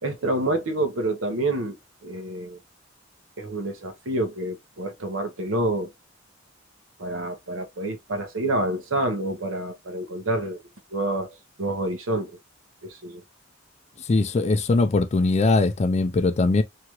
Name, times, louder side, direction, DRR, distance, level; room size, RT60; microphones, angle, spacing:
voice 1, 0.0-2.6 3.4-5.9 7.0-10.6 10.9-12.4 12.8-13.2, right 1 dB, 80° right, 0.8 m, -28 dB
voice 2, 14.0-16.6, left 3 dB, 35° left, 0.4 m, -21 dB
2.9 x 2.4 x 2.9 m
head